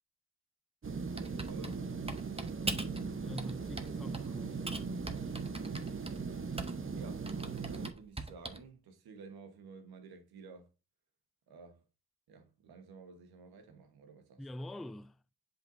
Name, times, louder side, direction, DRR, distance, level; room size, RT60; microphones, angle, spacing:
sound 1, 0.8-7.9, right 4 dB, 35° right, 0.9 m, -39 dB
voice 1, 1.1-1.8 6.6-10.7 11.5-11.9 12.3-14.5, right 4 dB, 85° right, 1.3 m, -53 dB
Typing, 1.2-3.0 3.4-4.3 4.7-6.9 7.3-8.7, right 2 dB, 15° right, 1.2 m, -41 dB
voice 2, 1.6-2.0 3.1-5.4 14.4-15.2, left 1 dB, ahead, 0.3 m, -46 dB
7.7 x 5.1 x 2.6 m
supercardioid pair, 40°, 37 cm